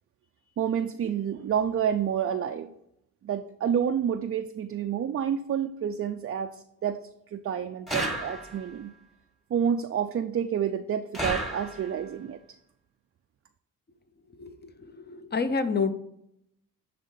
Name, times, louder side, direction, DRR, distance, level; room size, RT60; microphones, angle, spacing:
voice 1, 0.6-2.7 3.2-7.0 7.3-8.9 9.5-12.4, right 8 dB, 40° right, 7 dB, 0.4 m, -29 dB
sound 1, 7.9-8.8 11.1-12.1, right 1 dB, ahead, 1.3 m, -32 dB
voice 2, 14.4-15.9, left 4 dB, 25° left, 10 dB, 0.8 m, -29 dB
10.5 x 3.6 x 3.9 m, 0.77 s
cardioid pair, 90°, 37 cm